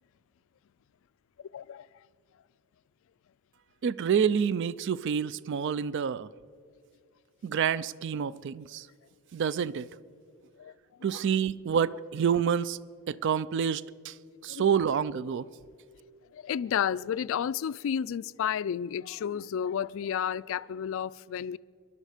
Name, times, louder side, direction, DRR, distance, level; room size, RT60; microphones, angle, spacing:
voice 1, 1.5-1.9 10.6-10.7 11.0-11.2 14.5-14.8 16.3-21.6, left 8 dB, 65° left, 0.3 m, -32 dB
voice 2, 3.8-6.3 7.4-8.9 9.3-9.9 11.0-12.8 13.1-14.1 14.4-15.5, right 7 dB, 55° right, 0.3 m, -28 dB
22.0 x 11.5 x 5.0 m
head